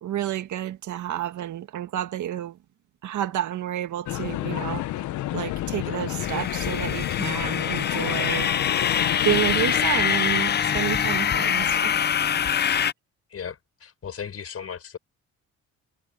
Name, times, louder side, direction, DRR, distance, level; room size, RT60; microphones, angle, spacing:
voice 1, 0.0-2.6 3.0-4.9 5.3-8.5 9.2-12.0, right 12 dB, 75° right, 2.0 m, -30 dB
sound 1, 4.1-9.8, left 14 dB, 75° left, 0.7 m, -30 dB
sound 2, 6.2-12.9, left 8 dB, 35° left, 0.5 m, -24 dB
voice 2, 13.3-15.0, left 7 dB, 50° left, 5.3 m, -36 dB
cardioid pair, 90°, 30 cm